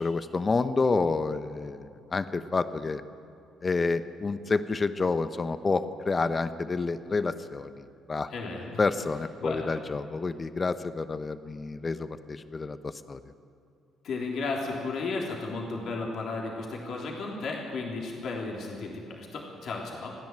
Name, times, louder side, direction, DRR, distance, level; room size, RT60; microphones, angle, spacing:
voice 1, 0.0-3.0 3.6-8.3 8.8-13.2, left 4 dB, 35° left, 12 dB, 1.0 m, -29 dB
voice 2, 8.3-8.8 9.4-9.7 14.0-20.1, left 3 dB, 60° left, -1 dB, 3.4 m, -34 dB
28.5 x 10.5 x 9.0 m, 2.6 s
hypercardioid pair, 50°, 0 cm